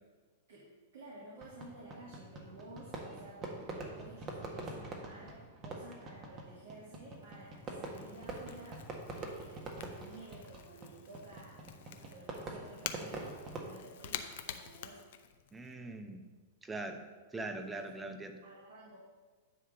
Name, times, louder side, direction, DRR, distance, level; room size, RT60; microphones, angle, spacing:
voice 1, 0.5-8.8 9.1-11.6 11.9-13.4 13.6-15.0 17.6-18.0 18.4-19.0, right 1 dB, 65° right, -5 dB, 2.2 m, -53 dB
Fireworks, 1.4-13.7, right 2 dB, 30° right, 1.6 m, -45 dB
Crackle / Crack, 6.2-15.7, left 9 dB, 65° left, 0.7 m, -49 dB
voice 2, 15.5-16.2 16.6-17.0 17.3-18.4, right 2 dB, 10° right, 6 dB, 0.9 m, -41 dB
9.9 x 3.7 x 7.1 m, 1.4 s
hypercardioid pair, 105°, 0 cm